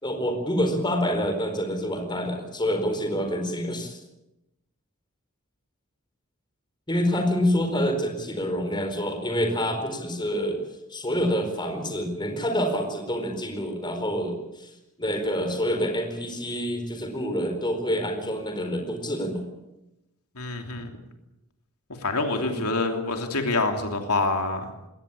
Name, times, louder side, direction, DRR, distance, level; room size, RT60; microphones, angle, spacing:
voice 1, 0.0-4.0 6.9-10.6 10.9-14.7 15.0-19.4 22.3-22.6, equal, 20° left, 5 dB, 4.4 m, -27 dB
voice 2, 20.4-20.9 22.0-24.6, left 3 dB, 85° left, 4 dB, 3.0 m, -26 dB
21.5 x 18.5 x 8.6 m, 0.93 s
head